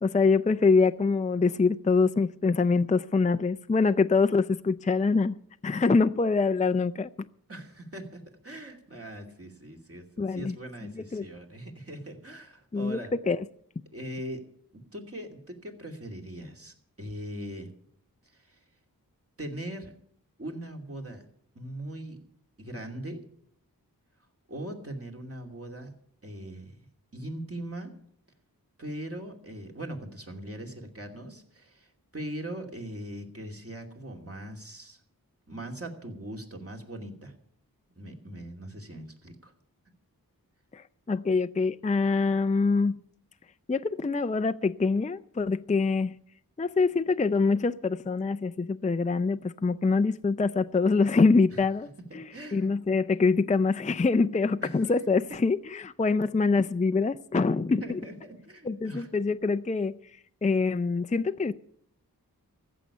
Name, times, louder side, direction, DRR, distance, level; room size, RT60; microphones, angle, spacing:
voice 1, 0.0-5.4 5.6-7.1 10.2-10.6 10.8-11.2 12.7-13.0 13.3-13.4 40.7-43.0 43.7-46.1 46.6-51.9 52.1-58.0 58.6-60.0 60.4-61.5, left 4 dB, 20° left, 0.5 m, -25 dB
voice 2, 7.5-13.1 13.9-14.4 14.7-17.7 18.2-18.6 19.4-19.9 20.4-21.2 21.5-22.2 22.6-23.2 24.5-25.9 26.2-26.8 27.1-27.9 28.8-35.0 35.5-37.3 38.0-39.5 51.5-51.6 52.1-52.7 54.6-54.9 57.0-57.1 57.8-59.1, right 1 dB, 40° right, 2.7 m, -40 dB
15.0 x 7.0 x 9.8 m
wide cardioid pair, 50°, 36 cm